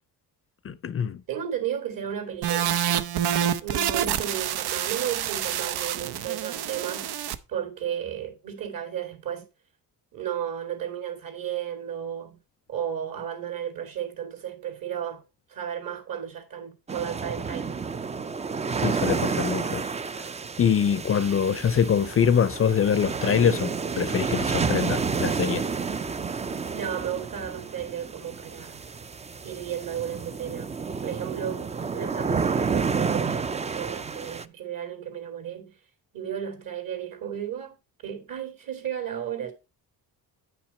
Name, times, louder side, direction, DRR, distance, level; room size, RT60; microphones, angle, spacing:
voice 1, 0.6-1.2 18.8-19.9 20.6-25.7, left 7 dB, 35° left, 0.5 m, -24 dB
voice 2, 1.3-2.8 3.6-9.5 10.1-12.4 12.7-15.2 15.5-17.8 26.7-28.8 29.4-30.7 31.0-35.7 36.1-37.7 38.0-39.5, right 9 dB, 60° right, 2.7 m, -33 dB
sound 1, 2.4-7.4, right 10 dB, 85° right, 0.7 m, -27 dB
sound 2, 16.9-34.4, right 5 dB, 20° right, 0.3 m, -30 dB
9.4 x 5.8 x 4.3 m
cardioid pair, 125°, 38 cm